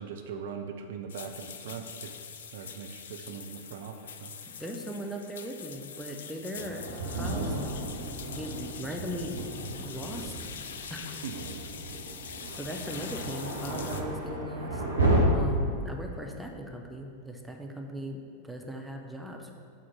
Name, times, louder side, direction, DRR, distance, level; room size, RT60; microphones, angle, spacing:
voice 1, 0.0-2.2 2.5-4.3 11.2-11.4, right 6 dB, 55° right, 5 dB, 0.5 m, -40 dB
sound 1, 1.1-14.0, left 7 dB, 60° left, 0.5 m, -44 dB
voice 2, 4.5-7.6 7.9-9.4 9.8-10.5 10.9-11.2 12.5-14.8 15.3-19.5, equal, 5° right, 1 dB, 0.8 m, -39 dB
Thunder, 6.5-15.2, right 2 dB, 80° right, 1.4 m, -33 dB
7.4 x 4.2 x 6.3 m, 2.6 s
figure-of-eight pair, 90°, 0 cm